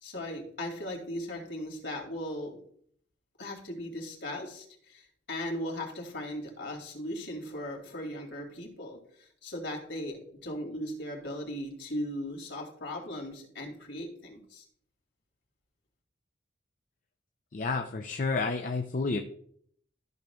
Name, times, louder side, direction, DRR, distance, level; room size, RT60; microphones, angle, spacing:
voice 1, 0.0-2.5 3.4-14.6, left 1 dB, 65° left, 0 dB, 2.6 m, -38 dB
voice 2, 17.5-19.2, left 3 dB, 45° left, 4 dB, 0.5 m, -30 dB
13.5 x 6.4 x 2.4 m, 0.63 s
head